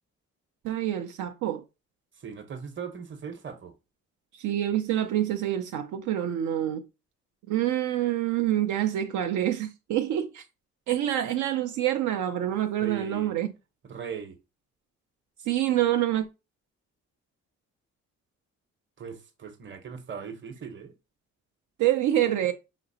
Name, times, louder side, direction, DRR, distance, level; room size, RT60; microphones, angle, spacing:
voice 1, 0.6-1.6 4.3-6.8 7.5-10.5 10.9-13.5 15.4-16.3 21.8-22.5, right 12 dB, 75° right, 0.5 m, -26 dB
voice 2, 2.2-3.7 12.8-13.4 13.9-14.4 19.0-20.9, right 7 dB, 40° right, 0.8 m, -39 dB
5.2 x 2.9 x 2.6 m
cardioid pair, 90°, 30 cm